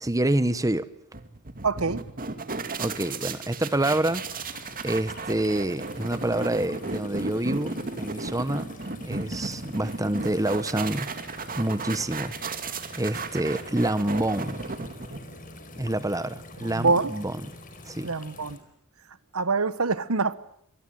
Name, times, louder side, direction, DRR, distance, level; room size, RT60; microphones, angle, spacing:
voice 1, 0.0-0.9 2.8-4.2 4.8-8.7 9.0-11.1 11.6-12.3 13.0-14.6 15.8-17.4 17.8-18.1, right 1 dB, 15° right, 1.0 m, -27 dB
sound 1, 1.1-15.5, right 3 dB, 40° right, 2.3 m, -35 dB
voice 2, 1.6-2.0 16.7-17.1 18.0-18.6 19.3-20.3, right 4 dB, 70° right, 1.3 m, -25 dB
sound 2, 3.7-18.6, left 2 dB, 40° left, 4.9 m, -46 dB
26.5 x 20.0 x 9.3 m
head